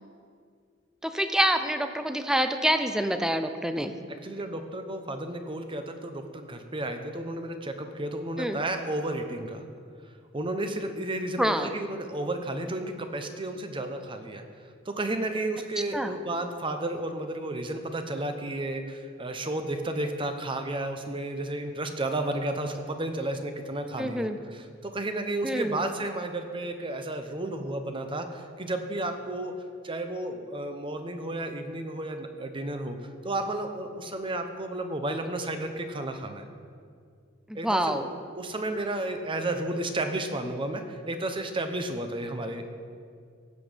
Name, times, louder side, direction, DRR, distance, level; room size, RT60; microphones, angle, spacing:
voice 1, 1.0-3.9 8.4-8.6 11.4-11.7 15.9-16.1 24.0-24.4 25.4-25.9 37.5-38.1, right 1 dB, 5° right, 8 dB, 0.6 m, -26 dB
voice 2, 4.2-9.6 10.3-14.4 14.9-29.5 29.8-36.4 37.5-38.0 38.4-42.7, right 1 dB, 25° right, 6 dB, 0.9 m, -32 dB
16.0 x 7.5 x 5.2 m, 2.2 s
head